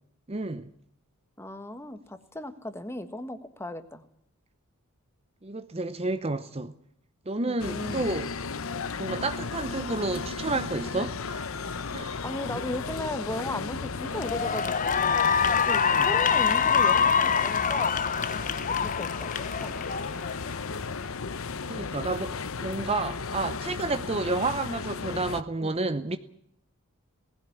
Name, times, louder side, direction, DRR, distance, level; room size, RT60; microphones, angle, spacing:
voice 1, 0.3-0.7 5.4-6.7 7.3-8.3 9.0-11.5 11.9-12.2 15.8-16.1 21.7-22.4 22.6-26.2, right 3 dB, 25° right, 0.8 m, -30 dB
voice 2, 1.4-4.0 7.4-8.1 12.2-18.0 18.4-19.8 25.6-25.8, left 1 dB, 10° left, 1.6 m, -37 dB
sound 1, 7.6-25.4, left 4 dB, 65° left, 0.8 m, -35 dB
Cheering / Applause, 13.4-13.7 14.1-20.6, left 6 dB, 35° left, 1.0 m, -25 dB
19.5 x 16.0 x 9.8 m
head